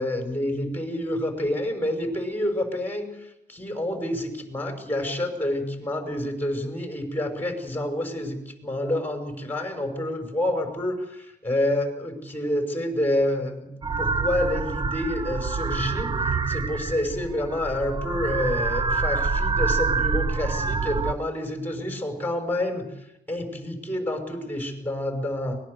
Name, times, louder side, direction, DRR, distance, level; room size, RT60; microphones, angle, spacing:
voice 1, 0.0-13.7 14.0-25.6, left 1 dB, 10° left, 3 dB, 6.0 m, -28 dB
sound 1, 13.8-21.1, right 4 dB, 25° right, 0.7 m, -26 dB
24.0 x 20.5 x 6.8 m, 0.84 s
cardioid pair, 130°, 18 cm